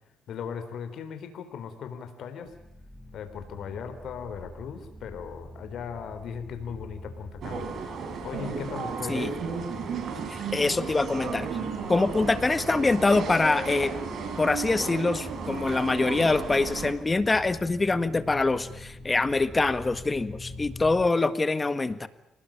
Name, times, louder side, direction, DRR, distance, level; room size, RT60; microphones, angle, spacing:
voice 1, 0.3-2.5 3.1-7.6 8.2-9.3, left 7 dB, 70° left, 8 dB, 4.1 m, -38 dB
sound 1, 2.4-21.1, left 1 dB, ahead, 4.2 m, -44 dB
sound 2, 7.4-16.9, right 5 dB, 60° right, 4.8 m, -34 dB
voice 2, 10.3-11.6 11.9-14.0 14.4-22.1, left 3 dB, 25° left, 13 dB, 1.7 m, -24 dB
28.0 x 19.5 x 8.9 m, 0.81 s
cardioid pair, 90°, 0 cm